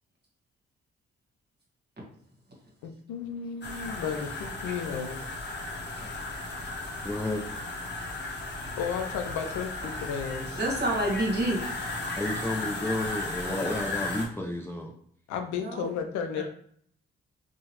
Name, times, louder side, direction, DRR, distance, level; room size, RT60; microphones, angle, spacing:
voice 1, 2.8-5.2 8.8-10.6 15.3-16.4, left 7 dB, 80° left, 6 dB, 0.5 m, -33 dB
sound 1, 3.6-14.3, left 2 dB, 35° left, 0.9 m, -35 dB
voice 2, 7.0-7.6 12.2-14.9, left 1 dB, 10° left, 0 dB, 0.4 m, -31 dB
voice 3, 10.6-11.7 15.6-15.9 16.4-16.5, right 1 dB, 35° right, -2 dB, 1.3 m, -28 dB
2.8 x 2.2 x 2.9 m, 0.62 s
hypercardioid pair, 40°, 29 cm